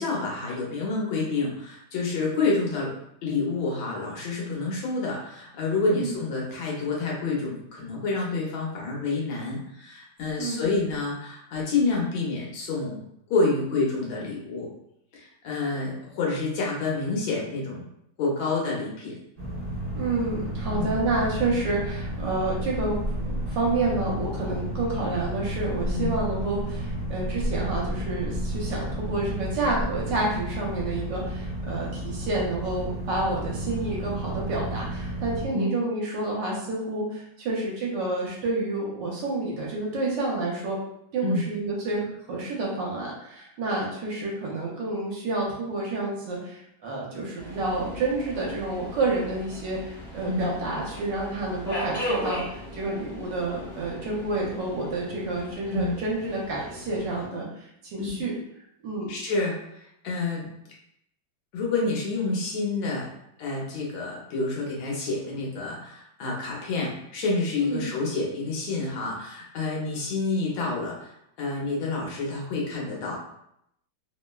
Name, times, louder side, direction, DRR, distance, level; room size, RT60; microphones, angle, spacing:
voice 1, 0.0-2.9 3.2-13.0 13.3-14.7 15.1-17.8 18.2-19.2 20.7-20.9 25.9-26.1 35.5-35.7 41.2-41.5 50.3-50.5 55.7-56.0 58.0-58.1 59.1-60.5 61.5-63.1 63.4-71.1 71.4-73.2, left 3 dB, 80° left, -3 dB, 1.5 m, -28 dB
sound 1, 19.4-35.4, equal, 50° right, 0.4 m, -32 dB
voice 2, 20.0-23.0 23.2-40.8 41.1-58.3 58.8-59.1 67.6-67.9, right 2 dB, 70° right, -3 dB, 1.3 m, -29 dB
Subway metro underground, 47.4-57.3, equal, 55° left, 0.7 m, -37 dB
3.5 x 2.0 x 2.2 m, 0.76 s
omnidirectional pair, 2.2 m